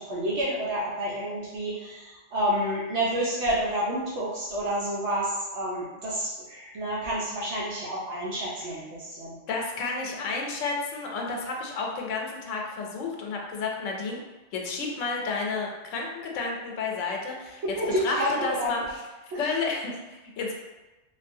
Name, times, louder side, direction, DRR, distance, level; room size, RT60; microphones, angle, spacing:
voice 1, 0.0-9.4 17.7-18.3 18.6-18.7 19.3-19.4, equal, 65° right, -6 dB, 0.9 m, -29 dB
voice 2, 9.5-14.2 14.5-18.8 19.4-20.6, left 4 dB, 80° left, 0 dB, 0.9 m, -31 dB
3.3 x 2.3 x 2.6 m, 1.1 s
omnidirectional pair, 1.3 m